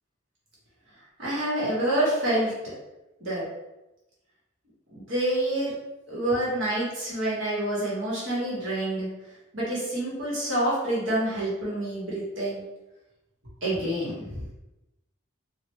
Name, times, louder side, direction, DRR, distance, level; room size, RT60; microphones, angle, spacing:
voice 1, 1.2-2.7 3.2-3.4 4.9-5.7 6.1-9.1 9.5-12.6 13.6-14.4, right 1 dB, 70° right, -7 dB, 1.5 m, -27 dB
3.3 x 2.6 x 3.1 m, 0.96 s
head